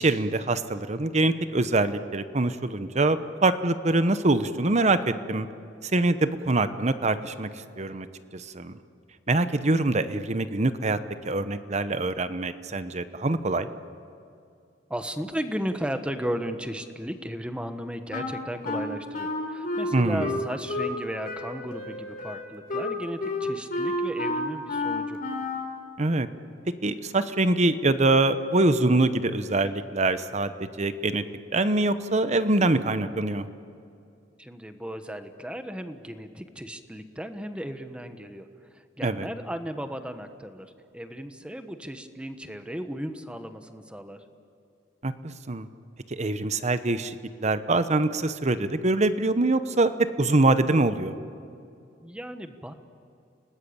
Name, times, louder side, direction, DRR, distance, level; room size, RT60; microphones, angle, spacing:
voice 1, 0.0-5.5 5.8-7.5 7.8-8.1 8.3-8.7 9.3-11.0 11.2-13.7 19.9-20.4 26.0-26.3 26.8-31.2 31.5-33.5 39.0-39.3 45.0-45.7 46.1-47.2 47.4-51.2, right 2 dB, 40° right, 11 dB, 1.0 m, -24 dB
voice 2, 14.9-25.2 34.4-38.5 38.7-40.7 40.9-44.2 52.0-52.7, equal, 5° right, 8 dB, 1.3 m, -35 dB
Wind instrument woodwind instrument, 18.1-21.0 21.2-25.8, left 2 dB, 50° left, 3.6 m, -30 dB
29.5 x 19.5 x 8.7 m, 2.5 s
head